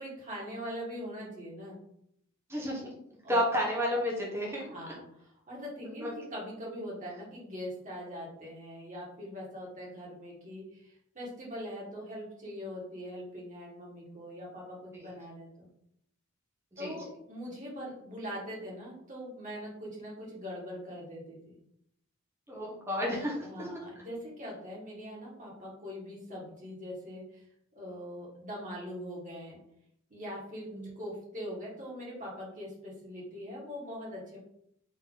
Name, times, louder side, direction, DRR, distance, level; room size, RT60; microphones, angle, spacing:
voice 1, 0.0-1.8 3.2-3.4 4.7-5.0 5.5-15.7 16.8-21.6 23.4-27.4 27.7-29.6 30.1-30.7 30.9-34.4, equal, 35° right, -4 dB, 1.7 m, -42 dB
voice 2, 2.5-2.9 3.3-4.7 6.0-6.1 14.9-15.1 16.7-16.9 22.5-23.7 30.7-30.9, equal, 10° right, -4 dB, 1.1 m, -31 dB
4.1 x 3.0 x 3.9 m, 0.73 s
head